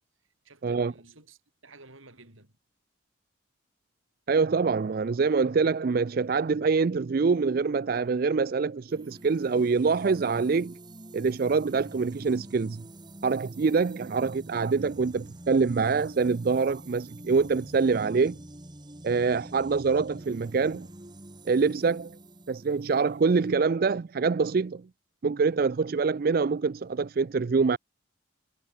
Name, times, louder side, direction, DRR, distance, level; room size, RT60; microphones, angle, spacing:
voice 1, 0.4-2.5 4.9-5.0, right 2 dB, 85° right, 6.7 m, -52 dB
voice 2, 4.3-10.8 11.1-12.8 13.2-18.4 19.0-20.9 21.5-22.2 22.5-24.8 25.2-27.8, right 4 dB, 45° right, 0.4 m, -25 dB
sound 1, 8.9-23.6, right 1 dB, 20° right, 1.8 m, -46 dB
head